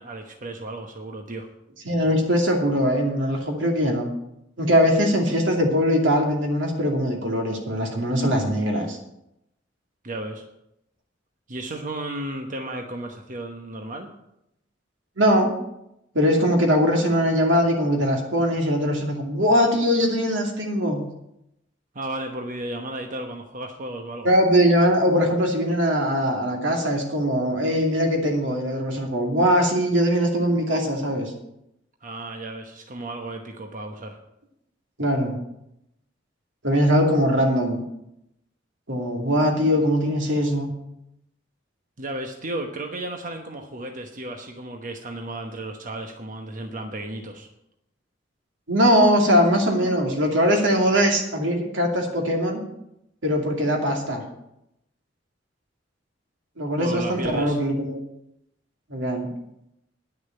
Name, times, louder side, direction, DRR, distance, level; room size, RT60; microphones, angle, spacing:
voice 1, 0.0-1.5 10.0-10.4 11.5-14.1 21.9-24.3 32.0-34.2 42.0-47.5 56.8-57.6, right 1 dB, 45° right, 3 dB, 1.1 m, -34 dB
voice 2, 1.8-4.1 4.6-9.0 15.2-15.5 16.1-21.0 24.2-31.3 35.0-35.4 36.6-37.8 38.9-40.7 48.7-52.6 53.2-54.2 56.6-58.0 58.9-59.3, equal, 85° right, 1 dB, 2.6 m, -21 dB
10.5 x 6.6 x 8.8 m, 0.83 s
head